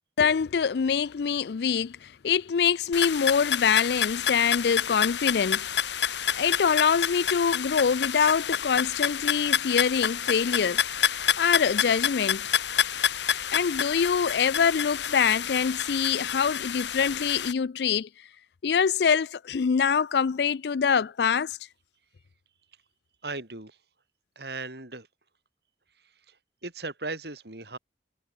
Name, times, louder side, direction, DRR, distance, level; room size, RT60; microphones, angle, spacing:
voice 1, 0.2-5.7 6.3-12.5 13.5-18.1 18.6-21.6, left 6 dB, 70° left, 0.4 m, -25 dB
sound 1, 2.9-17.5, left 9 dB, 85° left, 1.6 m, -28 dB
voice 2, 23.2-23.8 24.4-25.1 26.3-26.4 26.6-27.8, right 3 dB, 70° right, 4.4 m, -37 dB
head